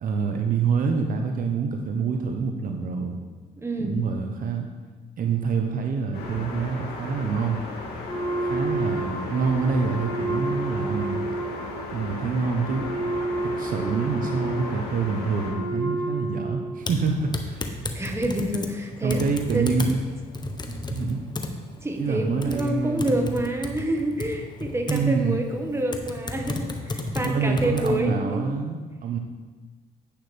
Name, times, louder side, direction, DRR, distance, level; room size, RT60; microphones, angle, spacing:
voice 1, 0.0-3.2 3.8-4.7 5.2-7.6 8.4-11.3 11.9-12.9 13.4-17.6 19.0-20.1 20.9-21.2 22.0-23.3 24.9-25.4 27.2-29.2, right 5 dB, 55° right, 4 dB, 0.9 m, -26 dB
voice 2, 3.6-4.0 17.9-19.2 19.5-19.6 20.7-20.8 21.8-28.5, right 1 dB, 15° right, 3 dB, 1.5 m, -28 dB
sound 1, 6.1-15.5, left 2 dB, 70° left, 2.3 m, -36 dB
Wind instrument woodwind instrument, 8.1-16.9, right 2 dB, 5° left, 2.2 m, -31 dB
Typing, 16.8-28.0, left 2 dB, 25° left, 1.1 m, -34 dB
10.5 x 8.5 x 3.4 m, 1.4 s
supercardioid pair, 75°, 17 cm